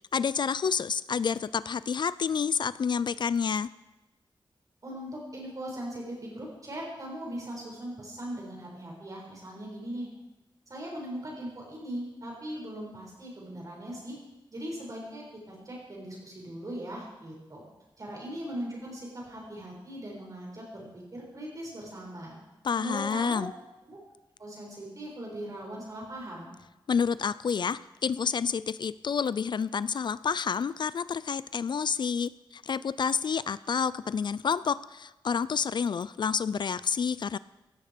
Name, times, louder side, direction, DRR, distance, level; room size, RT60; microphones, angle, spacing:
voice 1, 0.1-3.7 22.6-23.5 26.9-37.4, left 6 dB, 60° left, 17 dB, 0.4 m, -29 dB
voice 2, 4.8-10.1 10.7-14.2 14.5-17.6 18.0-22.3 22.8-23.5 23.9-24.0 24.4-26.5, right 1 dB, 40° right, -3 dB, 6.7 m, -39 dB
17.0 x 14.0 x 5.2 m, 1.0 s
wide cardioid pair, 145°, 9 cm